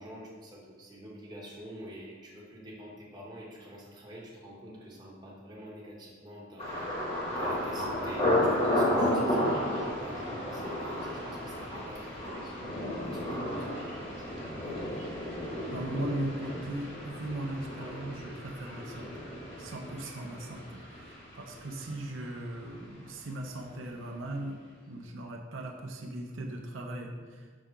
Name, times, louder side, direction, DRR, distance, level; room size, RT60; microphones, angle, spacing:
voice 1, 0.0-6.9 7.3-12.7 13.0-14.4, equal, 20° right, -4 dB, 1.2 m, -47 dB
Thunder, 6.6-22.4 22.6-23.2 23.7-23.9, left 1 dB, 30° left, 1.4 m, -33 dB
voice 2, 15.7-19.3 19.6-24.6 24.9-27.5, right 1 dB, 80° right, 2 dB, 0.7 m, -38 dB
6.0 x 3.7 x 5.5 m, 1.5 s
head